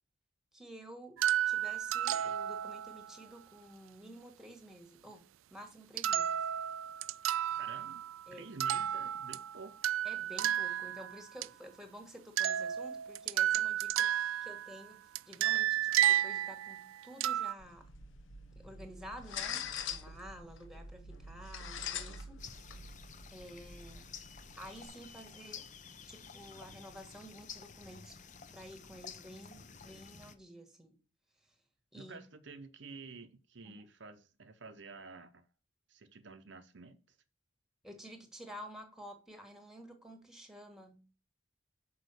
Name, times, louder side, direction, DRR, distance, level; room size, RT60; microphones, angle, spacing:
voice 1, 0.5-1.2 1.5-6.4 8.3-8.5 10.0-15.0 15.3-17.9 18.5-22.6 23.3-24.1 24.6-25.7 26.1-31.0 31.4-31.5 31.9-32.2 33.6-33.8 37.8-41.0, equal, ahead, 1.5 m, -51 dB
sound 1, 1.2-3.1 6.0-8.2 8.6-11.5 12.4-14.8 15.2-17.5, right 11 dB, 75° right, 0.3 m, -32 dB
voice 2, 7.5-8.0 8.3-9.9 31.9-35.5 35.9-37.2, right 4 dB, 60° right, 0.7 m, -50 dB
sound 2, 17.6-24.9, left 6 dB, 70° left, 1.0 m, -44 dB
sound 3, 22.4-30.4, left 6 dB, 35° left, 0.6 m, -51 dB
6.3 x 5.2 x 6.7 m
head